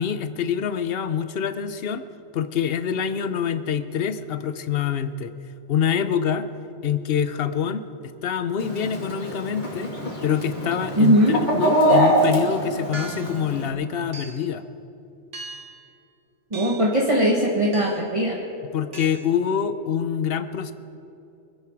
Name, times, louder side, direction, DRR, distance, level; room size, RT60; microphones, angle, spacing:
voice 1, 0.0-2.1 2.3-5.3 5.7-6.5 6.8-9.9 10.2-14.6 18.7-20.7, left 8 dB, 60° left, 11 dB, 0.9 m, -25 dB
Chicken rooster, 8.6-13.7, right 1 dB, 40° left, 2.8 m, -24 dB
voice 2, 11.0-11.4 16.5-18.4, equal, 25° right, -3 dB, 1.7 m, -19 dB
sound 1, 11.9-12.2 12.9-13.4 14.1-14.5 15.3-15.8 16.5-17.0 17.7-18.2 18.9-19.4, right 4 dB, 80° right, 1.8 m, -39 dB
25.0 x 10.5 x 4.7 m, 2.8 s
omnidirectional pair, 1.2 m